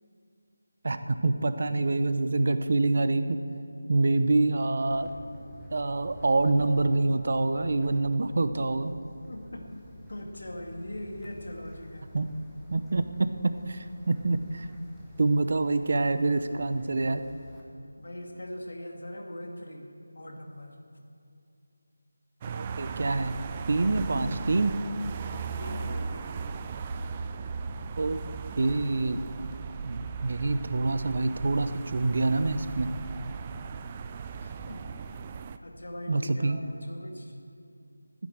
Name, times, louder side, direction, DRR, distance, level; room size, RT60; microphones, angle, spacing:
voice 1, 0.8-3.4 3.9-5.1 5.7-8.9 12.1-12.3 12.7-14.7 15.2-17.3 22.5-23.3 23.7-24.7 28.0-28.2 28.6-29.2 29.8-32.9 36.1-36.6, right 2 dB, 50° right, 11 dB, 0.8 m, -26 dB
Wind, 4.9-17.6, equal, ahead, 1.2 m, -49 dB
voice 2, 9.3-9.7 10.1-12.1 18.0-20.8 25.6-26.5 34.4-34.9 35.6-37.4, left 1 dB, 70° left, 2 dB, 2.2 m, -41 dB
sound 1, 22.4-35.6, right 5 dB, 20° right, 0.4 m, -37 dB
12.0 x 10.0 x 7.8 m, 2.6 s
figure-of-eight pair, 170°, 0 cm